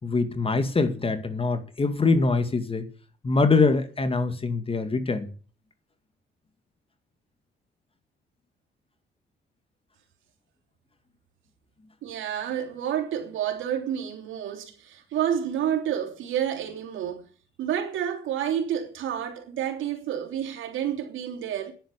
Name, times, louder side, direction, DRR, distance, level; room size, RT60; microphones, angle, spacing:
voice 1, 0.0-2.8 3.2-5.3, left 3 dB, 30° left, 2.2 m, -23 dB
voice 2, 12.0-17.2 17.6-21.7, right 9 dB, 80° right, 3.4 m, -29 dB
10.5 x 10.0 x 9.0 m
cardioid pair, 90°, 20 cm